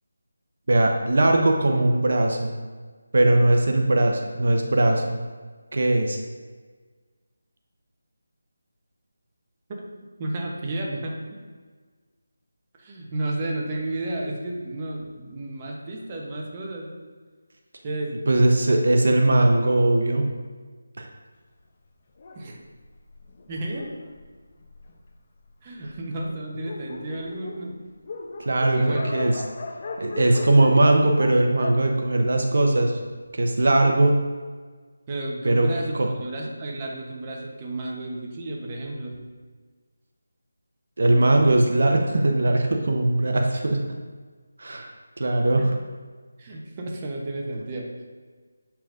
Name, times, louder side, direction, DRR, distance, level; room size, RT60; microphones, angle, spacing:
voice 1, 0.7-2.6 3.1-5.2 5.7-6.2 18.3-20.3 21.0-21.1 28.4-29.3 30.0-32.9 33.3-34.2 35.4-35.7 36.0-36.1 41.0-43.8 44.6-44.9 45.2-45.7, right 2 dB, 65° right, 3 dB, 0.8 m, -20 dB
voice 2, 10.2-11.4 12.8-16.9 17.8-18.2 22.3-22.6 23.5-23.8 25.6-27.8 28.7-29.1 35.1-39.3 45.6-45.7 46.4-47.9, right 2 dB, 25° right, -1 dB, 0.9 m, -32 dB
Dog, 22.2-25.2 25.9-26.0 26.2-26.3 26.5-32.9, left 3 dB, 35° left, 0.6 m, -37 dB
7.9 x 5.8 x 2.5 m, 1.5 s
figure-of-eight pair, 170°, 0 cm